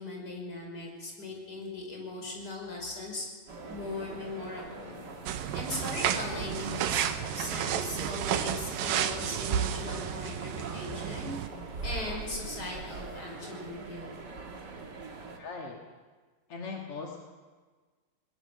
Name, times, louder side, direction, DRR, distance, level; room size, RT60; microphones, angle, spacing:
voice 1, 0.0-3.3 3.7-5.1 5.5-7.0 7.3-11.3 11.8-14.1, left 2 dB, 20° left, 0 dB, 5.5 m, -39 dB
sound 1, 3.5-15.4, right 3 dB, 70° right, 1.0 m, -42 dB
sound 2, 5.3-11.5, right 9 dB, 85° right, 2.0 m, -32 dB
voice 2, 15.4-15.8 16.5-17.2, left 4 dB, 50° left, 0 dB, 1.7 m, -39 dB
20.5 x 20.5 x 6.9 m, 1.4 s
omnidirectional pair, 5.5 m